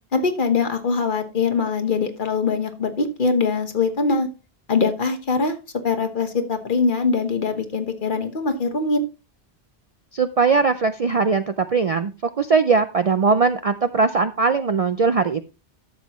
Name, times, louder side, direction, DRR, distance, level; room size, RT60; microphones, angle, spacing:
voice 1, 0.1-4.3 4.7-5.5 5.8-9.0, left 4 dB, 50° left, 8 dB, 1.3 m, -22 dB
voice 2, 10.1-15.5, right 4 dB, 45° right, 10 dB, 0.5 m, -20 dB
12.0 x 7.4 x 3.0 m, 0.30 s
omnidirectional pair, 1.1 m